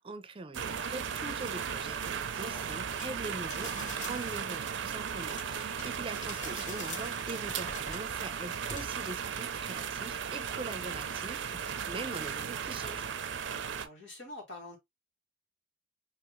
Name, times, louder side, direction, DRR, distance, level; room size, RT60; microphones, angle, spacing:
voice 1, 0.0-13.1, right 2 dB, 30° right, 0.5 m, -42 dB
sound 1, 0.5-13.9, right 7 dB, 80° right, 0.5 m, -36 dB
voice 2, 2.3-2.7 13.8-14.8, left 2 dB, 85° left, 1.9 m, -46 dB
sound 2, 2.6-3.0 3.4-4.5 5.3-5.9 6.2-8.0 8.7-8.9, left 2 dB, 45° left, 1.6 m, -44 dB
3.5 x 2.9 x 3.0 m
head